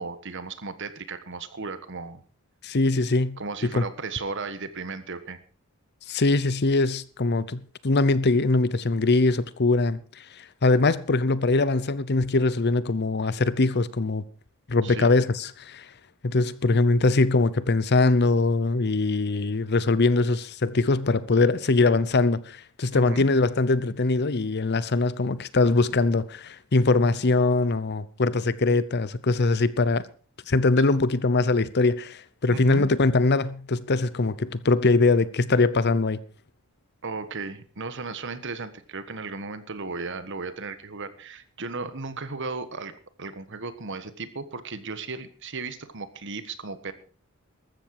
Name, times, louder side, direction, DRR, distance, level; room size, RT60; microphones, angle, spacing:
voice 1, 0.0-2.2 3.4-5.4 14.8-15.1 22.9-23.3 32.5-32.9 37.0-46.9, right 4 dB, 55° right, 1.4 m, -35 dB
voice 2, 2.6-3.4 3.8-3.9 6.1-10.0 10.4-14.2 14.7-15.9 16.2-30.0 30.5-36.2, left 3 dB, 50° left, 0.8 m, -22 dB
14.5 x 13.0 x 4.8 m
head